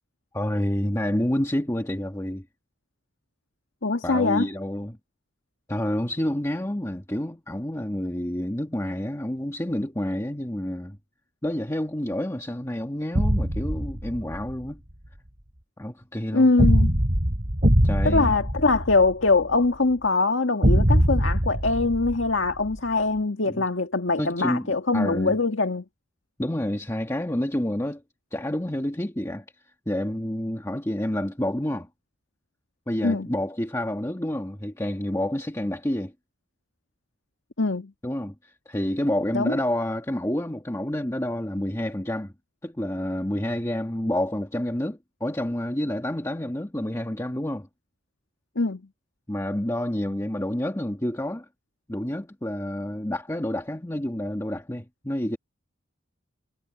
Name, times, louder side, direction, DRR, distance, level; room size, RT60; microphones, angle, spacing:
voice 1, 0.3-2.4 4.0-5.0 5.7-11.0 11.4-14.8 15.8-16.5 17.8-18.4 23.5-23.6 24.2-25.4 26.4-28.0 28.3-29.4 29.9-31.9 32.9-36.1 38.0-42.3 42.6-47.7 49.3-51.4 51.9-55.4, left 1 dB, 15° left, 1.5 m, -28 dB
voice 2, 3.8-4.5 16.3-17.0 18.0-25.8 33.0-33.3 37.6-37.9 39.3-39.6 48.6-48.8, left 3 dB, 70° left, 2.0 m, -23 dB
sound 1, 13.1-14.5 16.6-19.5 20.6-22.8, equal, 40° right, 3.7 m, -22 dB
head